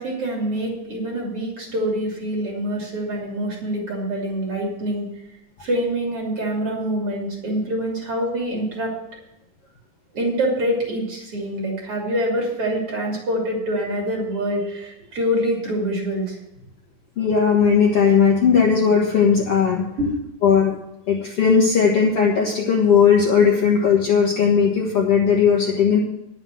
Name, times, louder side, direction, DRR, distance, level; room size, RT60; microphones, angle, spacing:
voice 1, 0.0-5.1 5.6-8.9 10.1-16.4 20.0-20.1, equal, 40° right, -1 dB, 3.6 m, -25 dB
voice 2, 17.2-19.9 20.4-20.7 21.1-26.0, left 6 dB, 55° left, -3 dB, 2.0 m, -17 dB
10.5 x 7.6 x 7.5 m, 0.86 s
omnidirectional pair, 4.1 m